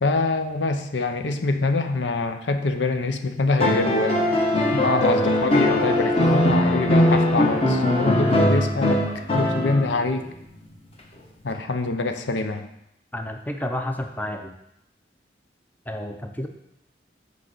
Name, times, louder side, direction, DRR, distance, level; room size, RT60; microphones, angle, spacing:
voice 1, 0.0-4.4 4.7-9.0 9.3-10.2 11.4-12.7, left 3 dB, 80° left, 7 dB, 0.7 m, -25 dB
sound 1, 3.6-10.0 11.5-11.6, left 1 dB, 30° left, 1.0 m, -20 dB
voice 2, 13.1-14.6 15.9-16.5, left 1 dB, 10° left, 4 dB, 0.5 m, -30 dB
6.2 x 5.3 x 6.8 m, 0.81 s
head